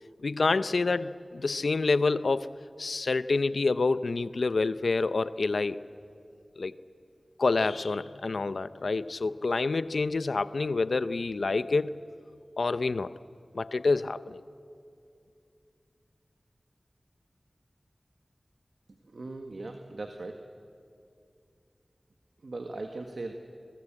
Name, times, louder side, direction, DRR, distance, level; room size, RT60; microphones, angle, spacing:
voice 1, 0.2-2.5 2.8-5.8 6.6-6.7 7.4-11.9 12.6-13.1 13.5-14.4, left 3 dB, 90° left, 15 dB, 0.6 m, -27 dB
voice 2, 19.1-20.4 22.4-23.3, right 2 dB, 75° right, 4 dB, 1.5 m, -38 dB
27.5 x 21.0 x 8.7 m, 2.5 s
wide cardioid pair, 65°, 0 cm